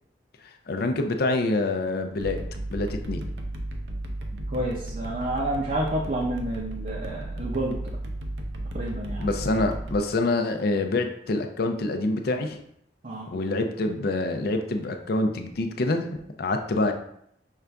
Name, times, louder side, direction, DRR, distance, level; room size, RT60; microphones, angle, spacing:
voice 1, 0.7-2.4 2.7-3.3 9.2-12.6 13.3-16.9, left 2 dB, 60° left, 5 dB, 0.5 m, -26 dB
sound 1, 2.2-10.0, right 1 dB, 85° right, 0.6 m, -34 dB
voice 2, 4.5-7.8 8.7-9.3 13.0-13.3, right 1 dB, 45° right, -3 dB, 0.6 m, -29 dB
5.5 x 2.5 x 3.4 m, 0.71 s
head